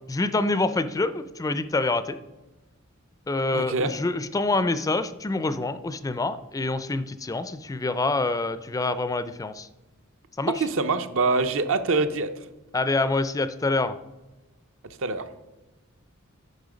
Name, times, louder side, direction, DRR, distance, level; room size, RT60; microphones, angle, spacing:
voice 1, 0.1-2.2 3.3-9.7 10.4-10.7 12.7-14.0, left 2 dB, 15° left, 12 dB, 0.4 m, -26 dB
voice 2, 3.5-3.9 10.5-12.3 15.0-15.3, right 3 dB, 65° right, 10 dB, 0.7 m, -24 dB
9.5 x 5.5 x 5.1 m, 1.1 s
head